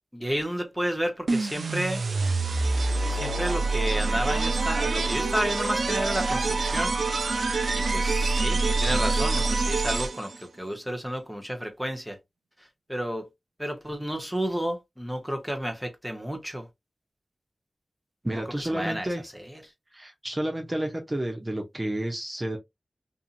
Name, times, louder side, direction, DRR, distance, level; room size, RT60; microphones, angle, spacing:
voice 1, 0.1-2.0 3.1-7.0 7.7-12.2 12.6-13.3 13.6-16.7 18.6-19.1 19.3-19.6, equal, ahead, 1.0 m, -31 dB
sound 1, 1.3-10.4, right 3 dB, 80° right, 0.4 m, -26 dB
voice 2, 18.2-19.2 19.9-22.6, right 1 dB, 25° right, 0.8 m, -30 dB
2.6 x 2.6 x 2.5 m
cardioid pair, 45°, 0 cm